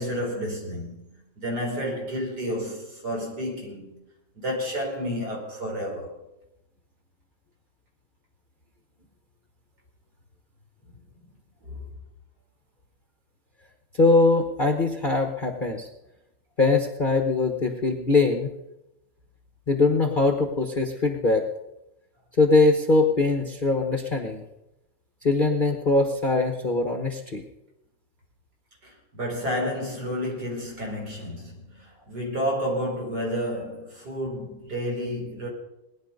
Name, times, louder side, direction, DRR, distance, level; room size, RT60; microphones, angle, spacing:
voice 1, 0.0-3.9 4.4-6.1 10.9-11.0 11.6-11.8 28.8-35.5, equal, 60° right, 5.2 m, -31 dB
voice 2, 14.0-15.9 16.6-18.5 19.7-21.5 22.4-24.4 25.2-27.4, left 3 dB, 30° left, 1.1 m, -22 dB
20.0 x 10.5 x 5.3 m
omnidirectional pair, 2.0 m